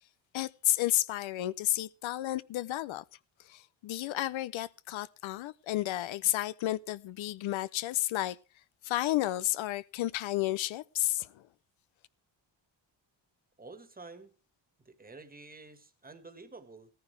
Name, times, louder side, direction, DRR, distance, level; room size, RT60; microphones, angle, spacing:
voice 1, 0.3-3.0 3.5-8.4 8.8-11.4, left 15 dB, 85° left, 0.7 m, -32 dB
voice 2, 13.6-14.3 14.9-16.9, right 3 dB, 20° right, 1.6 m, -50 dB
16.5 x 14.5 x 3.3 m
cardioid pair, 120°, 45 cm